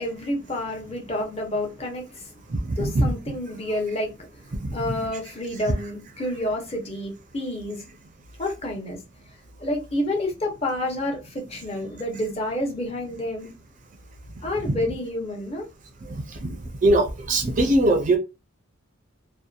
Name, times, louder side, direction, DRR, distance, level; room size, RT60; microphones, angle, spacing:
voice 1, 0.0-2.3 2.7-4.4 4.7-7.8 8.4-9.0 9.6-13.5 14.4-15.7, left 1 dB, 30° left, 0.7 m, -29 dB
voice 2, 2.5-3.1 4.6-4.7 14.6-14.8 16.1-16.6 16.8-18.2, right 1 dB, 40° right, 0.4 m, -22 dB
2.7 x 2.1 x 2.3 m
head